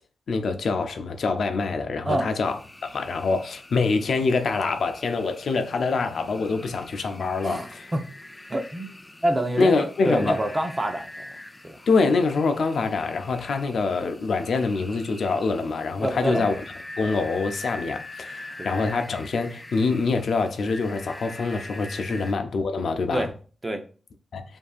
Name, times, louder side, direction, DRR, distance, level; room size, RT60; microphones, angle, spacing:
voice 1, 0.3-7.9 9.6-10.4 11.9-16.5 17.0-23.3 24.3-24.4, left 4 dB, 75° left, 0.5 m, -25 dB
sound 1, 2.4-22.3, left 2 dB, 20° left, 0.4 m, -43 dB
voice 2, 7.4-8.1 8.5-8.9 9.2-11.1 11.6-11.8 16.0-16.5 22.1-22.3 23.1-23.3 23.6-23.8, right 1 dB, 25° right, 0.7 m, -26 dB
7.2 x 2.7 x 2.4 m
wide cardioid pair, 90°, 0 cm